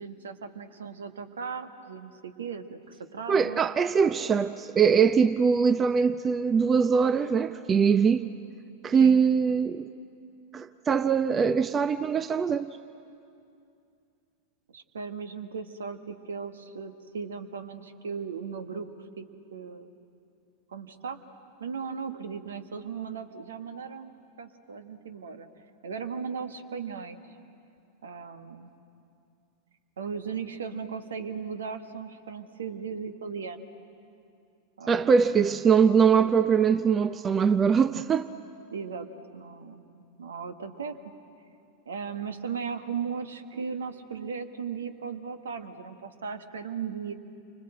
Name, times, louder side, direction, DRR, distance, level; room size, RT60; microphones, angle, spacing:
voice 1, 0.0-3.6 8.9-9.2 14.7-18.9 19.2-19.3 19.5-19.9 20.7-21.2 21.6-24.1 24.4-25.5 25.8-27.2 28.0-28.7 30.0-33.6 34.8-35.1 38.7-39.1 39.3-41.1 41.8-47.1, right 6 dB, 65° right, 1.4 m, -37 dB
voice 2, 3.3-8.2 8.8-9.9 10.5-12.8 34.9-38.3, right 6 dB, 20° right, 0.6 m, -22 dB
29.5 x 25.0 x 7.7 m
figure-of-eight pair, 90°, 0 cm